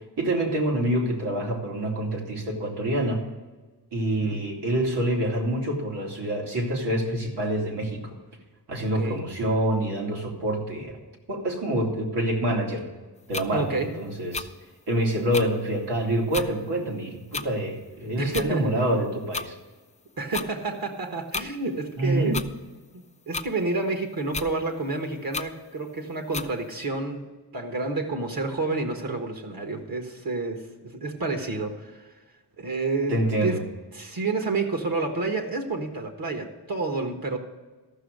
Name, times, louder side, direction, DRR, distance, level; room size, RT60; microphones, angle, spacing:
voice 1, 0.2-3.2 3.9-8.1 8.7-11.0 11.3-12.9 13.3-14.5 14.9-19.5 22.0-22.4 33.1-33.6, right 1 dB, 80° right, -1 dB, 2.5 m, -26 dB
sound 1, 13.3-13.5 14.3-14.5 15.3-15.5 16.3-16.5 17.3-17.5 18.3-18.5 19.3-19.5 20.3-20.5 21.3-21.5 22.3-22.5 23.3-23.5 24.3-24.5 25.3-25.5 26.3-26.5, left 4 dB, 20° left, 0.4 m, -31 dB
voice 2, 13.5-13.9 18.2-18.7 20.2-22.4 22.9-32.1 32.6-33.6 33.9-37.4, right 3 dB, 60° right, 4 dB, 1.5 m, -29 dB
14.0 x 6.3 x 6.5 m, 1.3 s
wide cardioid pair, 155°, 40 cm